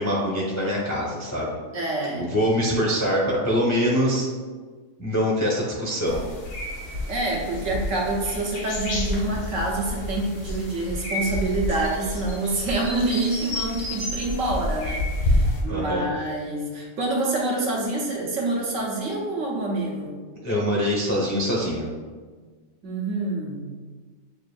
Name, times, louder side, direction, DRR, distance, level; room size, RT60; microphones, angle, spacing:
voice 1, 0.0-1.6 2.2-4.3 5.0-6.2 15.7-16.1 20.4-21.9, equal, 20° left, -4 dB, 0.5 m, -24 dB
voice 2, 1.7-2.3 7.1-20.2 22.8-23.7, right 2 dB, 70° right, -2 dB, 1.1 m, -27 dB
sound 1, 6.1-15.6, left 1 dB, 80° left, 1.4 m, -29 dB
6.6 x 2.5 x 2.3 m, 1.5 s
omnidirectional pair, 1.5 m